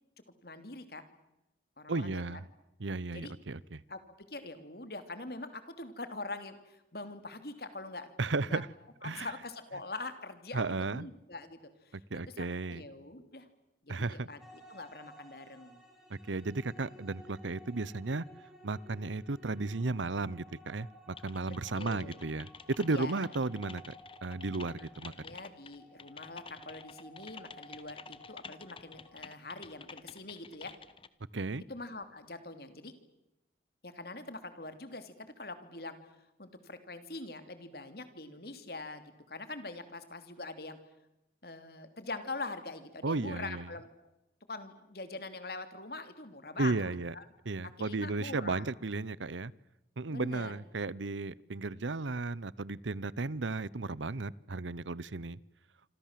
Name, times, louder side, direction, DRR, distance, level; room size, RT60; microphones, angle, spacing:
voice 1, 0.4-1.0 1.8-2.4 3.1-3.3 3.9-4.0 4.3-8.1 8.5-8.6 9.0-11.6 11.8-13.5 13.8-15.8 21.5-22.1 22.9-23.2 25.0-30.7 31.7-32.9 33.8-36.1 36.4-40.8 41.4-43.9 44.5-46.8 47.1-47.2 47.8-48.7 50.1-50.5, left 2 dB, 55° left, 10 dB, 3.2 m, -44 dB
voice 2, 1.9-2.4 2.8-3.8 8.2-8.7 9.0-9.3 10.5-11.1 11.9-12.8 13.9-14.3 16.1-18.2 18.6-23.8 24.2-25.3 31.3-31.6 43.0-43.7 46.6-47.1 47.5-49.5 50.0-55.4, right 3 dB, 85° right, 22 dB, 0.9 m, -34 dB
sound 1, 14.4-29.1, equal, ahead, 6.6 m, -56 dB
Typing, 21.2-31.1, left 5 dB, 30° left, 1.1 m, -50 dB
27.5 x 25.5 x 7.6 m, 0.94 s
head